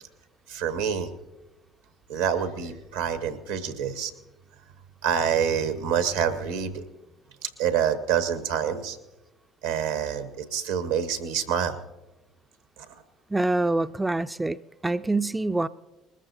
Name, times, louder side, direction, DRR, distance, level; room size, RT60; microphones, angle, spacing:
voice 1, 0.5-1.1 2.1-4.1 5.0-6.8 7.4-9.0 9.6-11.8 12.8-12.9, right 8 dB, 80° right, 1.2 m, -27 dB
voice 2, 13.3-15.7, right 2 dB, 15° right, 0.4 m, -26 dB
20.0 x 14.5 x 2.8 m
hypercardioid pair, 60°, 0 cm